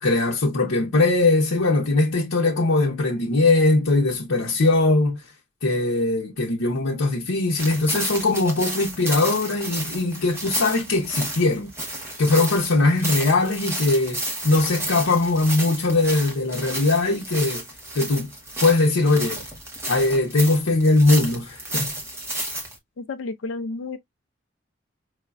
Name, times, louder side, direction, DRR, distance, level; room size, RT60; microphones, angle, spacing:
voice 1, 0.0-5.2 5.6-11.7 12.2-17.6 17.9-18.3 18.6-19.4 19.9-21.9, left 2 dB, 85° left, 0.8 m, -20 dB
sound 1, 7.6-22.8, right 1 dB, 10° right, 0.9 m, -32 dB
voice 2, 23.0-24.0, left 3 dB, 70° left, 0.4 m, -31 dB
4.7 x 2.2 x 2.3 m
head